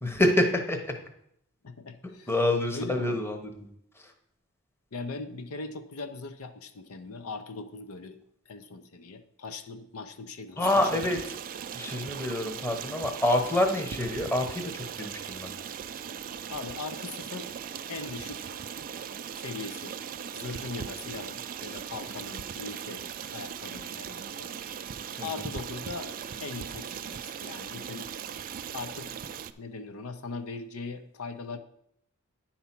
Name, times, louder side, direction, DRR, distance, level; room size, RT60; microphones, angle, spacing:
voice 1, 0.0-0.9 2.3-3.7 10.6-11.2 11.7-14.7 15.0-15.5 25.2-25.3, left 1 dB, 10° left, 5 dB, 0.9 m, -27 dB
voice 2, 1.6-2.3 2.7-3.2 4.9-8.2 8.5-11.0 13.9-14.1 16.5-17.5 17.9-18.5 19.3-20.0 20.3-24.5 25.2-26.1 26.4-28.1 28.7-29.2 29.6-31.6, left 4 dB, 75° left, 9 dB, 0.7 m, -40 dB
Stream, 10.6-29.5, right 8 dB, 40° right, 0.4 m, -39 dB
9.5 x 4.3 x 5.9 m, 0.73 s
head